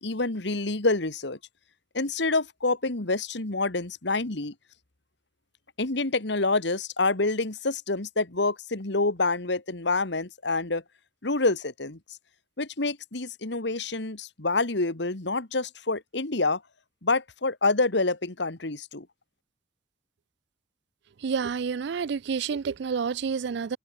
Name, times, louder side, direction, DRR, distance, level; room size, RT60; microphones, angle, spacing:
voice 1, 0.0-1.4 1.9-4.5 5.8-10.8 11.2-12.0 12.6-16.6 17.0-19.1, left 3 dB, 70° left, 2.0 m, -27 dB
voice 2, 21.2-23.8, right 6 dB, 65° right, 0.4 m, -29 dB
head